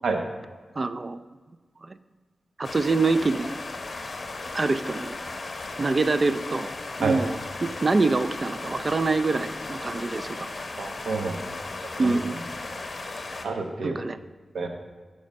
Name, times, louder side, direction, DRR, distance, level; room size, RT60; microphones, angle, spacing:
voice 1, 0.8-1.2 1.8-2.0 2.6-3.5 4.5-5.1 5.8-6.7 7.0-10.5 12.0-12.4 13.8-14.2, right 3 dB, 45° right, 12 dB, 0.4 m, -25 dB
sound 1, 2.6-13.5, left 3 dB, 50° left, 0.8 m, -36 dB
voice 2, 10.8-11.4 12.0-12.2 12.7-12.8 13.4-14.0 14.5-14.7, right 4 dB, 85° right, 4 dB, 0.9 m, -28 dB
7.4 x 5.0 x 5.2 m, 1.4 s
cardioid pair, 70°, 0 cm